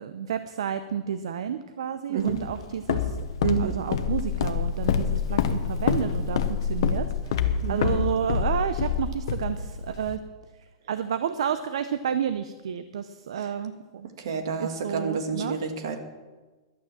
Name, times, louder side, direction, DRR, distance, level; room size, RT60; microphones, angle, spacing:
voice 1, 0.0-3.2 3.6-10.2 10.9-14.1 14.6-15.6, right 8 dB, 80° right, 11 dB, 0.7 m, -31 dB
Walk footsteps, 2.3-10.2, left 7 dB, 60° left, 0.9 m, -27 dB
voice 2, 3.4-3.8 7.6-7.9 14.2-16.0, right 6 dB, 60° right, 7 dB, 1.7 m, -28 dB
12.0 x 9.0 x 7.4 m, 1.3 s
supercardioid pair, 175°, 3 cm